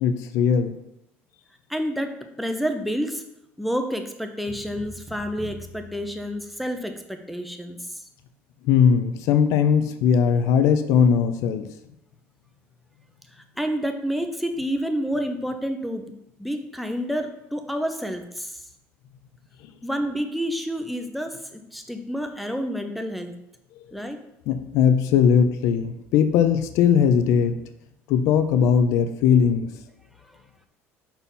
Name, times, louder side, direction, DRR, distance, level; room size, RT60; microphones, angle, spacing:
voice 1, 0.0-0.8 8.6-11.7 24.5-27.6 28.1-29.7, left 7 dB, 75° left, 9 dB, 0.6 m, -19 dB
voice 2, 1.7-3.2 3.6-7.8 13.6-16.1 16.4-18.6 19.8-23.4 23.9-24.2, equal, ahead, 6 dB, 0.7 m, -29 dB
sound 1, 4.5-7.0, equal, 25° right, 1.2 m, -43 dB
5.7 x 4.4 x 5.4 m, 0.83 s
cardioid pair, 120°, 5 cm